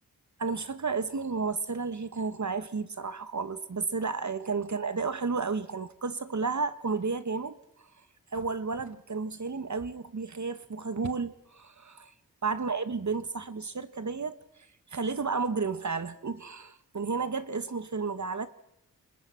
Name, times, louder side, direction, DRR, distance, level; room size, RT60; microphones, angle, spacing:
voice 1, 0.4-7.9 8.3-12.1 12.4-14.4 14.9-18.5, right 4 dB, 55° right, 1.5 m, -32 dB
28.0 x 26.5 x 6.0 m
wide cardioid pair, 70°, 34 cm